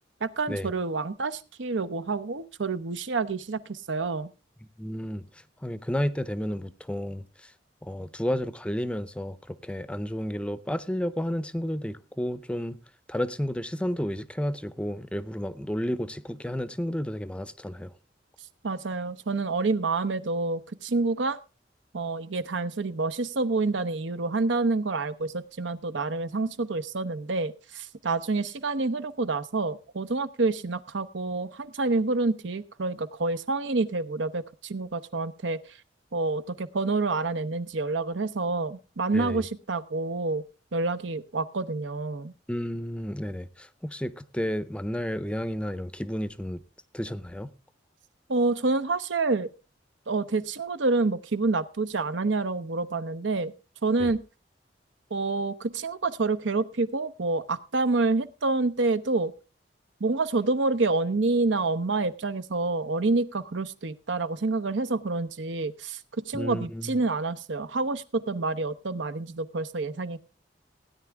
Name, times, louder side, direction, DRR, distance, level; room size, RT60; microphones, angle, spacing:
voice 1, 0.2-4.3 18.6-21.4 21.9-35.8 36.1-40.4 40.7-42.3 48.3-49.5 50.1-53.5 53.8-54.2 55.1-59.3 60.0-70.2, right 3 dB, 90° right, 0.8 m, -28 dB
voice 2, 4.8-7.5 7.8-12.8 13.1-17.9 39.1-39.5 42.5-46.6 46.9-47.5 54.0-54.1 66.3-67.0, equal, 5° left, 0.5 m, -32 dB
17.0 x 9.8 x 3.5 m
head